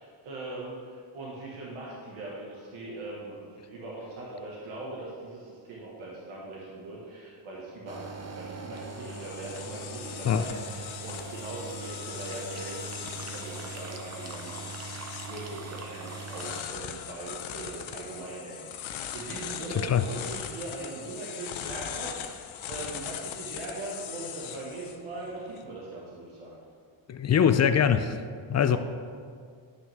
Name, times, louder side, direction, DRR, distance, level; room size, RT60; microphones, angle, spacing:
voice 1, 0.0-26.6 28.7-28.8, right 2 dB, 90° right, -5 dB, 1.6 m, -40 dB
sound 1, 7.9-16.6, right 4 dB, 35° right, 0.8 m, -41 dB
sound 2, 8.4-25.6, left 9 dB, 75° left, 0.8 m, -40 dB
voice 2, 19.7-20.0 27.1-28.2 28.5-28.8, left 8 dB, 35° left, 10 dB, 0.4 m, -23 dB
11.0 x 6.1 x 3.5 m, 2.1 s
cardioid pair, 105°, 47 cm